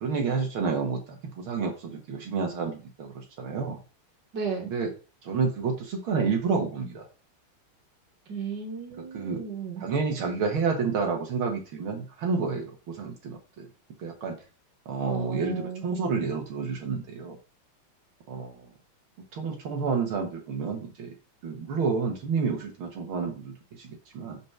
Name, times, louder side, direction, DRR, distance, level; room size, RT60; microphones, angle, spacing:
voice 1, 0.0-3.8 4.7-4.9 5.2-7.1 9.1-9.4 9.8-13.7 14.0-14.4 14.9-17.4 18.3-18.6 19.3-21.1 21.4-24.4, right 5 dB, 75° right, 2 dB, 2.2 m, -29 dB
voice 2, 4.3-4.7 8.3-9.9 15.1-15.9, right 6 dB, 55° right, 0 dB, 2.5 m, -34 dB
5.6 x 5.1 x 6.0 m, 0.35 s
omnidirectional pair, 2.4 m